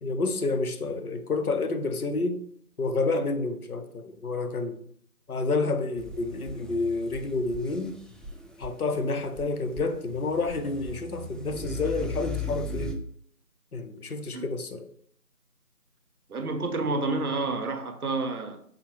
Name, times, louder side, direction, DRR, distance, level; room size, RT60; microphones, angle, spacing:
voice 1, 0.0-2.4 2.8-4.8 5.3-8.0 8.6-12.9 13.7-14.8, left 3 dB, 70° left, 0.6 m, -29 dB
sound 1, 6.0-9.0 9.4-13.0, left 2 dB, ahead, 0.3 m, -37 dB
voice 2, 16.3-18.6, right 3 dB, 70° right, 0.7 m, -29 dB
4.9 x 2.1 x 2.9 m
figure-of-eight pair, 170°, 46 cm